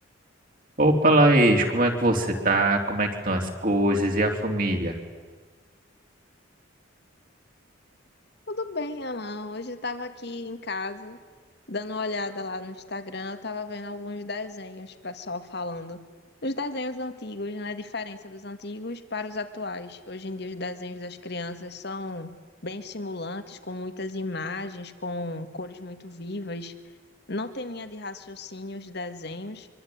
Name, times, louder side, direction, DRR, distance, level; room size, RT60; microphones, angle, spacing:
voice 1, 0.8-4.9, right 1 dB, 45° right, 2 dB, 3.9 m, -21 dB
voice 2, 8.5-11.2 11.7-16.0 16.4-22.3 22.6-26.7 27.3-29.7, left 2 dB, 55° left, 9 dB, 2.1 m, -34 dB
25.5 x 24.0 x 9.6 m, 1.4 s
head